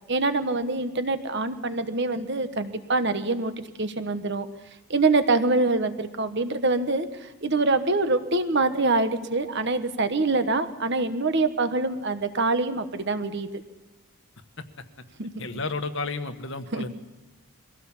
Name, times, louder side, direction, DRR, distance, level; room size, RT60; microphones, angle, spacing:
voice 1, 0.1-3.5 3.8-4.5 4.9-7.1 7.4-13.5 15.2-15.5 16.7-16.9, right 3 dB, 50° right, 10 dB, 1.3 m, -25 dB
voice 2, 15.4-16.9, left 3 dB, 55° left, 9 dB, 1.4 m, -32 dB
22.5 x 16.5 x 7.2 m, 1.1 s
head